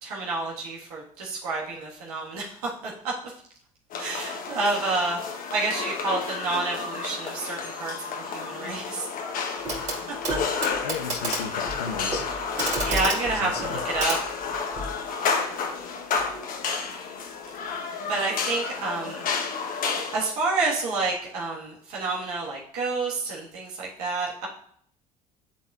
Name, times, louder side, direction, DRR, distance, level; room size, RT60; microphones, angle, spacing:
voice 1, 0.0-3.3 4.0-5.2 5.5-9.0 12.8-14.2 18.1-19.2 20.1-24.5, right 3 dB, 75° right, -4 dB, 1.5 m, -29 dB
sound 1, 3.9-20.3, left 5 dB, 45° left, 1.0 m, -31 dB
Clock, 9.7-10.0 10.2-14.9 16.2-16.3, right 2 dB, 35° right, 2.8 m, -32 dB
voice 2, 10.8-12.3 13.3-13.9, left 8 dB, 80° left, 8 dB, 0.5 m, -34 dB
11.0 x 3.9 x 2.4 m, 0.64 s
figure-of-eight pair, 60°, 19 cm